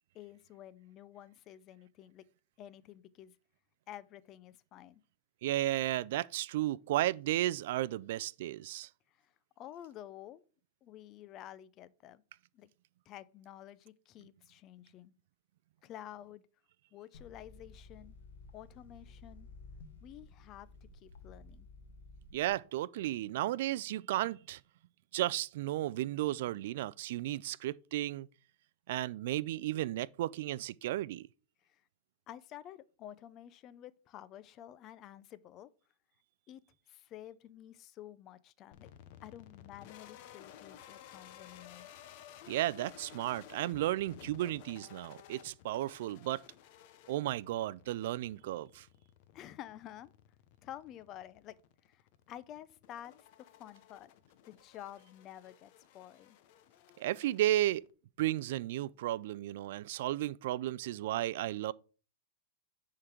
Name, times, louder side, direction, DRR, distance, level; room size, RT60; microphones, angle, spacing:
voice 1, 0.1-2.2 2.6-3.4 3.9-5.0 9.1-10.4 10.8-12.2 12.5-12.7 13.1-15.1 15.8-16.4 16.9-18.2 18.5-19.5 20.0-21.7 31.6-31.8 32.3-35.7 36.5-38.9 39.2-41.9 49.3-50.1 50.6-51.6 51.8-54.1 54.5-56.4, left 12 dB, 30° left, 0.5 m, -51 dB
voice 2, 5.4-8.9 22.3-24.6 25.1-28.3 28.9-31.3 42.5-46.4 47.1-48.9 57.0-57.8 58.2-61.7, right 14 dB, 65° right, 0.3 m, -34 dB
sound 1, 17.1-22.5, left 3 dB, 80° left, 1.1 m, -54 dB
sound 2, 38.7-57.9, left 10 dB, 50° left, 0.8 m, -56 dB
9.9 x 3.8 x 4.4 m
supercardioid pair, 150°, 0 cm